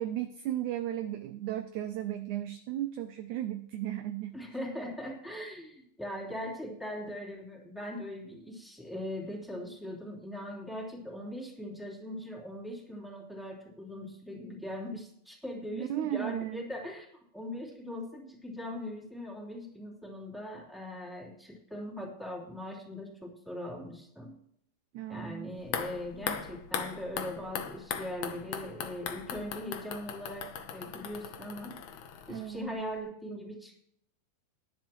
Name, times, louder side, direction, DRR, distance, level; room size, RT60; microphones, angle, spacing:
voice 1, 0.0-4.3 15.7-16.6 24.9-25.6 32.3-32.8, right 12 dB, 85° right, 9 dB, 1.7 m, -35 dB
voice 2, 4.3-17.1 17.3-24.3 25.1-31.8 32.3-33.8, left 1 dB, ahead, -3 dB, 2.9 m, -40 dB
sound 1, 25.6-32.7 33.0-33.1, left 7 dB, 70° left, 1.7 m, -39 dB
19.5 x 10.5 x 3.1 m, 0.71 s
omnidirectional pair, 4.2 m